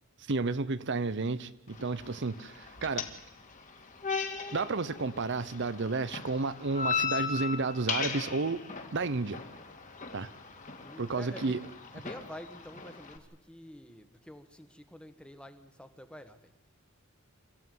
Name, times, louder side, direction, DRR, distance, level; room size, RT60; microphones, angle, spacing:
voice 1, 0.3-3.1 4.5-8.6 8.9-9.4 10.1-10.3 11.0-11.6, right 3 dB, 60° right, 0.8 m, -31 dB
sound 1, 1.7-13.2, left 5 dB, 40° left, 2.5 m, -38 dB
voice 2, 10.8-16.5, equal, 5° left, 1.6 m, -48 dB
26.5 x 15.0 x 9.5 m
head